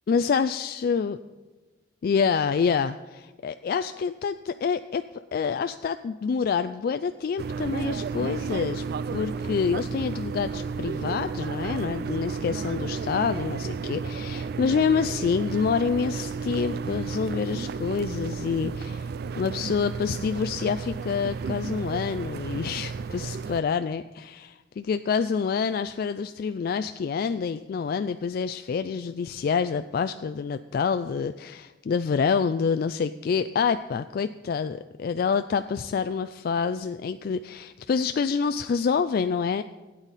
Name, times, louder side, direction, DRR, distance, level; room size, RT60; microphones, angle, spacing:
voice 1, 0.1-1.2 2.0-8.8 9.1-19.1 19.4-39.6, left 6 dB, 55° left, 10 dB, 0.3 m, -27 dB
sound 1, 7.4-23.6, right 5 dB, 60° right, 0.3 m, -32 dB
15.5 x 8.9 x 4.1 m, 1.2 s
head